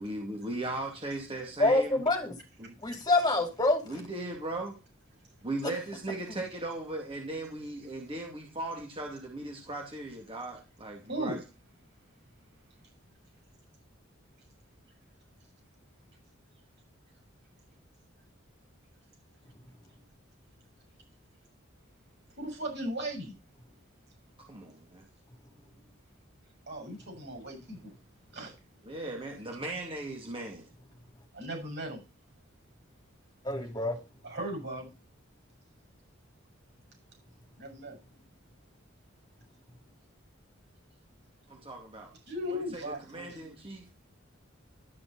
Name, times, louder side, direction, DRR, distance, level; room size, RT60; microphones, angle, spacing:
voice 1, 0.0-2.0 2.6-2.7 3.9-4.8 5.4-11.4 24.5-25.1 28.8-30.7 41.5-42.1 42.5-43.8, right 2 dB, 25° right, 2.5 m, -38 dB
voice 2, 1.6-2.3 2.8-3.8 6.3-6.4 33.4-33.9, left 2 dB, 20° left, 3.0 m, -26 dB
voice 3, 11.1-11.4 22.4-23.4 26.7-27.9 28.3-28.5 31.3-32.0 34.2-34.9 37.6-38.0 42.3-43.4, equal, 55° right, 6.5 m, -37 dB
12.5 x 5.8 x 5.5 m
head